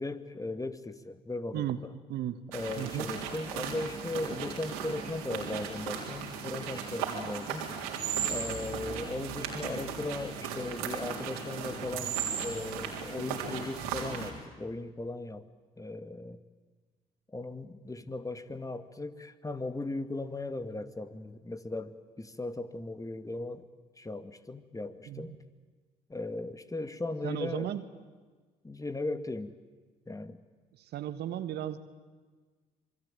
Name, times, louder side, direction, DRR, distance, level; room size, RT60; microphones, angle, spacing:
voice 1, 0.0-1.9 2.5-7.7 8.3-15.5 15.8-16.4 17.3-23.7 24.0-25.3 26.1-27.8 28.6-29.5 30.1-30.4, left 2 dB, 20° left, 10 dB, 2.0 m, -37 dB
voice 2, 2.1-2.4 2.8-3.1 25.0-25.4 27.2-27.8 30.7-31.8, right 12 dB, 65° right, 12 dB, 1.5 m, -35 dB
sound 1, 2.5-14.3, right 7 dB, 85° right, 3.6 m, -36 dB
26.5 x 21.0 x 9.1 m, 1.4 s
hypercardioid pair, 50°, 18 cm